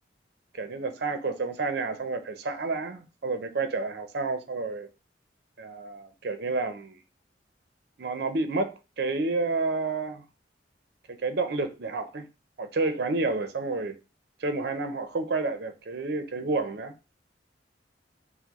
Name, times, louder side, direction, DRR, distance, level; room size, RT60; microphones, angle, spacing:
voice 1, 0.5-4.9 5.6-7.0 8.0-10.2 11.1-12.3 12.6-14.0 14.4-16.9, right 3 dB, 60° right, 0.6 m, -30 dB
5.6 x 2.1 x 3.0 m
head